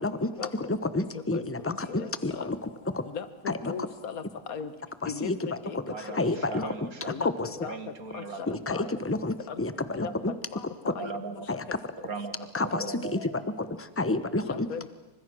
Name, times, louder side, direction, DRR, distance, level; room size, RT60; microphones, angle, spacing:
voice 1, 0.0-3.0 3.5-3.7 5.0-5.4 5.7-6.6 7.2-7.5 8.5-10.3 10.8-10.9 11.5-11.6 12.5-13.0 13.6-14.7, left 2 dB, 20° left, 12 dB, 0.3 m, -30 dB
voice 2, 1.3-2.1 2.3-2.5 3.1-4.2 4.5-4.7 5.1-5.3 5.6-5.8 6.1-6.2 6.6-6.7 7.1-7.8 8.1-8.9 9.5-9.6 9.9-10.0 10.5-10.6 11.0-11.1 12.8-12.9 13.2-13.3 14.4-14.9, left 7 dB, 45° left, 12 dB, 1.6 m, -37 dB
voice 3, 5.9-7.1 7.6-9.0 10.0-10.2 11.0-11.5 12.0-13.2, right 4 dB, 45° right, 9 dB, 2.1 m, -39 dB
28.5 x 25.5 x 6.3 m, 1.1 s
omnidirectional pair, 2.3 m